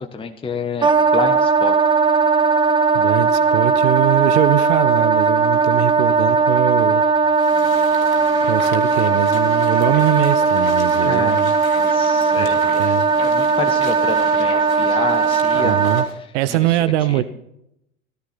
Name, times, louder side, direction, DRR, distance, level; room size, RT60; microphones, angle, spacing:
voice 1, 0.0-1.8 11.0-11.4 11.8-12.8 13.2-15.8 16.0-16.1 16.5-16.8 17.1-17.2, left 5 dB, 15° left, 1.2 m, -29 dB
Wind instrument woodwind instrument, 0.8-16.1, right 4 dB, 10° right, 0.6 m, -17 dB
voice 2, 2.9-7.0 8.4-11.6 12.4-13.1 15.5-16.1 16.3-17.2, right 13 dB, 55° right, 0.9 m, -22 dB
sound 1, 7.3-16.2, left 3 dB, 85° left, 2.9 m, -37 dB
17.0 x 14.0 x 4.3 m
figure-of-eight pair, 80°, 40 cm